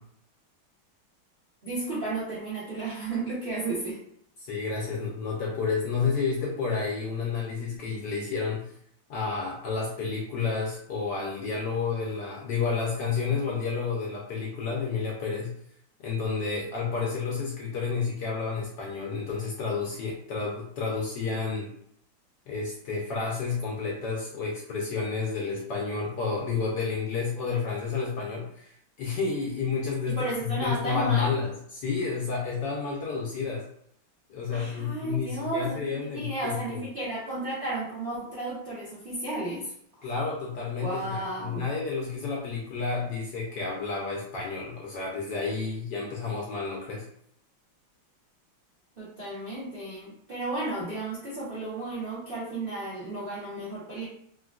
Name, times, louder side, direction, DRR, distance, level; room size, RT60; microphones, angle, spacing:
voice 1, 1.6-4.0 30.1-31.3 34.5-39.7 40.0-40.1 40.8-41.6 49.0-54.1, right 2 dB, 70° right, -9 dB, 0.5 m, -33 dB
voice 2, 4.4-8.7 9.1-15.5 16.0-21.7 22.5-33.7 34.3-36.8 40.0-47.0, left 5 dB, 70° left, -3 dB, 1.0 m, -30 dB
3.8 x 2.2 x 2.4 m, 0.68 s
omnidirectional pair, 2.3 m